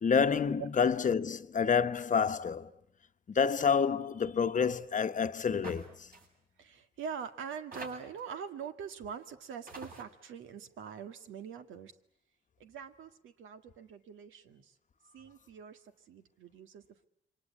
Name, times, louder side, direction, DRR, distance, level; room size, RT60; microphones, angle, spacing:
voice 1, 0.0-2.7 3.3-6.1, left 6 dB, 40° left, 1.1 m, -28 dB
sound 1, 5.6-5.9 6.1-6.3 7.2-7.3 7.7-8.2 9.2-9.3 9.7-10.0, right 3 dB, 50° right, 7.9 m, -45 dB
voice 2, 6.6-11.9 12.6-14.7 15.1-17.1, right 6 dB, 80° right, 1.9 m, -44 dB
28.0 x 24.0 x 8.4 m
cardioid pair, 90°, 20 cm